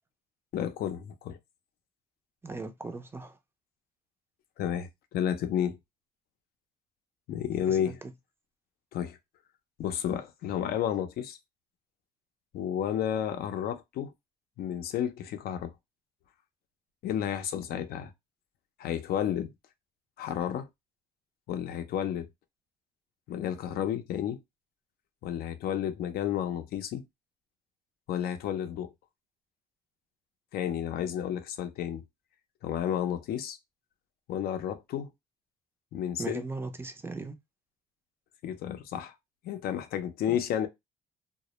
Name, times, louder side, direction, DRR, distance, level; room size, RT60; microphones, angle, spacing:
voice 1, 0.5-1.4 4.6-5.8 7.3-8.0 8.9-9.2 9.8-11.4 12.5-14.1 14.6-15.7 17.0-18.1 18.8-19.5 20.2-20.7 21.5-22.3 23.3-24.4 25.2-27.0 28.1-28.9 30.5-32.0 32.6-33.6 34.3-35.1 35.9-36.4 38.4-39.1 39.4-40.7, left 10 dB, 65° left, 0.5 m, -31 dB
voice 2, 2.4-3.4 7.7-8.0 36.2-37.4, right 3 dB, 15° right, 0.4 m, -38 dB
2.1 x 2.0 x 2.9 m
cardioid pair, 110°, 17 cm